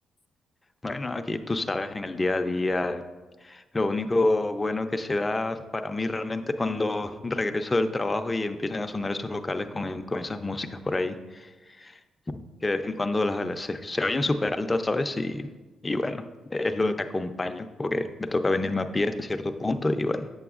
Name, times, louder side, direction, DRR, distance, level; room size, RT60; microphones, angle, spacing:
voice 1, 0.8-3.0 3.4-11.5 11.8-12.0 12.3-15.5 15.8-16.2 16.5-20.3, left 2 dB, 20° left, 7 dB, 0.4 m, -28 dB
8.6 x 6.8 x 2.4 m, 1.2 s
cardioid pair, 115°, 0 cm